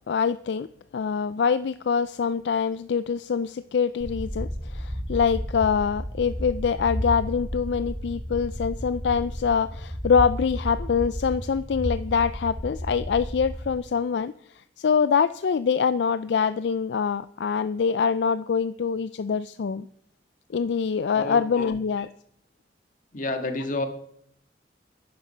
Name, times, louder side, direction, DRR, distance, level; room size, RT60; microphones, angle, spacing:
voice 1, 0.1-0.7 0.9-19.9 20.5-22.1, left 6 dB, 70° left, 14 dB, 0.4 m, -24 dB
sound 1, 4.0-13.8, equal, 10° right, 1.7 m, -33 dB
voice 2, 21.1-21.8 23.1-23.9, left 2 dB, 50° left, 6 dB, 1.8 m, -30 dB
13.5 x 10.5 x 5.5 m, 0.70 s
head